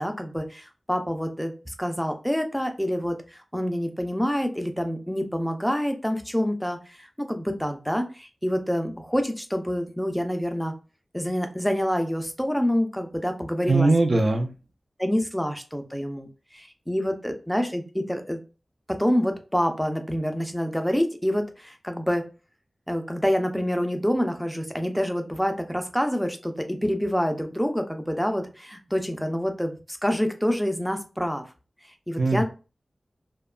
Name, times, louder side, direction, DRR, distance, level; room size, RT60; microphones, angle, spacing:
voice 1, 0.0-10.7 11.1-13.9 15.0-16.3 16.5-18.4 18.9-22.3 22.9-31.4 32.1-32.4, equal, 5° left, 6 dB, 0.4 m, -27 dB
voice 2, 13.7-14.5 32.2-32.4, right 2 dB, 60° right, 4 dB, 0.4 m, -20 dB
2.7 x 2.2 x 2.3 m, 0.32 s
wide cardioid pair, 60°, 0 cm